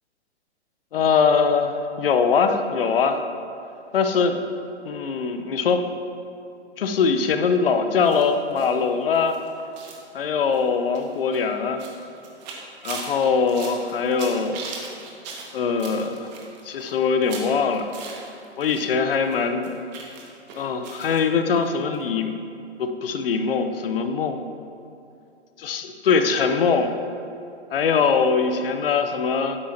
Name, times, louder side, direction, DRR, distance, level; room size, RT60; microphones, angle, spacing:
voice 1, 0.9-3.2 3.9-4.4 4.8-5.9 6.8-9.4 10.1-11.8 12.8-14.6 15.5-16.3 16.6-17.9 18.6-19.7 20.6-22.4 22.8-24.4 25.6-26.9 27.7-29.6, left 5 dB, 55° left, 7 dB, 0.9 m, -22 dB
sound 1, 8.0-18.9 19.1-21.2 21.5-21.7 21.9-22.0, right 4 dB, 40° right, 1.8 m, -40 dB
12.5 x 9.7 x 2.9 m, 2.6 s
figure-of-eight pair, 125°, 34 cm